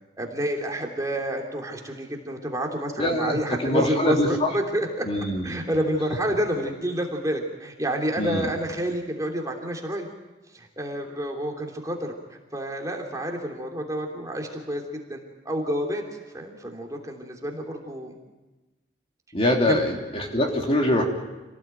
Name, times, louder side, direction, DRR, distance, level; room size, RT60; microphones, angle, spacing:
voice 1, 0.2-5.1 5.4-10.1 10.5-14.8 15.1-16.0 16.3-18.2 19.7-19.8, equal, 20° right, 1 dB, 3.1 m, -29 dB
voice 2, 3.0-4.5 5.0-5.6 8.2-8.5 19.3-21.0, left 1 dB, 30° left, 1 dB, 3.2 m, -24 dB
27.5 x 18.5 x 9.1 m, 1.1 s
head